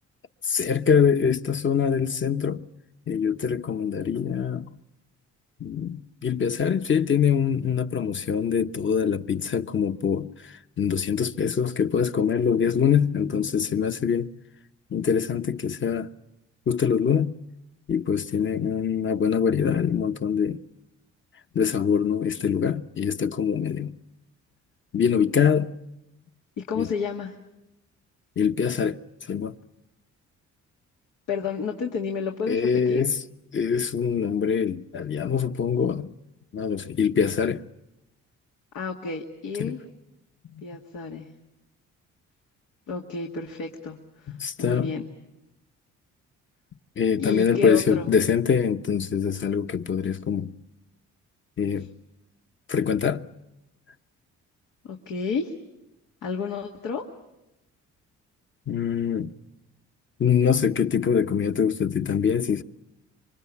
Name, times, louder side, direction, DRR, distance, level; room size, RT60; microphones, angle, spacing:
voice 1, 0.4-2.6 3.1-4.7 5.6-14.3 14.9-16.1 16.7-17.3 17.9-20.6 21.5-23.9 24.9-25.7 26.7-26.9 28.4-29.0 29.3-29.5 32.5-33.2 33.5-36.1 36.5-37.6 39.6-39.8 44.3-45.0 47.0-50.5 51.6-51.9 52.7-53.2 58.7-59.3 60.2-62.6, left 7 dB, 40° left, 1.0 m, -24 dB
voice 2, 26.6-27.3 31.3-33.0 38.7-39.8 40.6-41.3 42.9-44.3 44.6-45.1 47.2-48.1 54.8-55.5 56.2-57.0, left 5 dB, 90° left, 2.2 m, -31 dB
27.0 x 25.0 x 8.5 m
cardioid pair, 90°, 30 cm